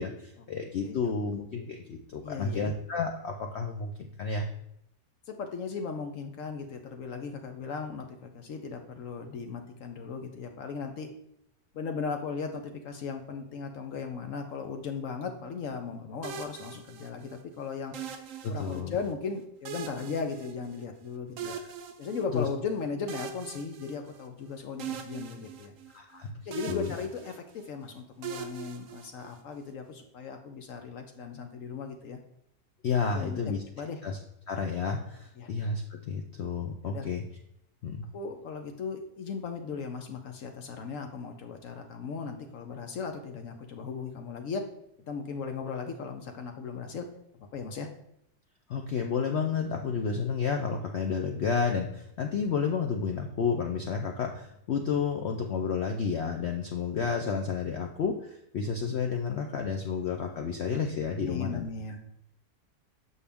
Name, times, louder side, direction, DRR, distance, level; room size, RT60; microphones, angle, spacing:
voice 1, 0.0-4.5 18.4-18.9 21.4-21.6 22.3-22.5 25.9-26.3 26.7-26.9 32.8-33.6 34.0-34.2 34.5-37.2 37.8-38.1 48.7-61.6, left 5 dB, 85° left, 3 dB, 0.5 m, -31 dB
voice 2, 2.2-2.6 5.3-11.1 11.7-17.9 18.5-21.5 22.0-25.7 26.5-32.2 33.1-33.4 33.8-34.0 35.4-35.5 36.8-37.1 38.1-44.7 45.0-47.1 47.4-47.9 61.2-62.0, left 5 dB, 65° left, 5 dB, 0.9 m, -37 dB
sound 1, 16.2-17.4 17.9-19.1 19.6-21.0 21.4-22.6 23.1-24.4 24.8-26.2 26.5-27.7 28.2-29.6, right 7 dB, 65° right, 0.8 m, -41 dB
6.5 x 5.5 x 3.4 m, 0.76 s
omnidirectional pair, 1.8 m